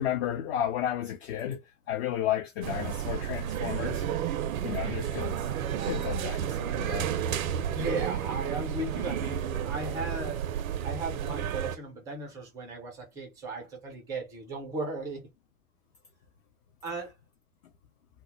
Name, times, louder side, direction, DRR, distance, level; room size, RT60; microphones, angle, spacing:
voice 1, 0.0-1.6 1.9-4.1 4.6-5.5 5.8-7.1, left 10 dB, 45° left, 0.5 m, -32 dB
sound 1, 2.6-11.8, right 9 dB, 70° right, 0.5 m, -31 dB
voice 2, 7.7-10.5 10.8-15.2 16.8-17.1, right 2 dB, 10° right, 0.3 m, -36 dB
2.1 x 2.0 x 3.1 m
figure-of-eight pair, 90°, 44 cm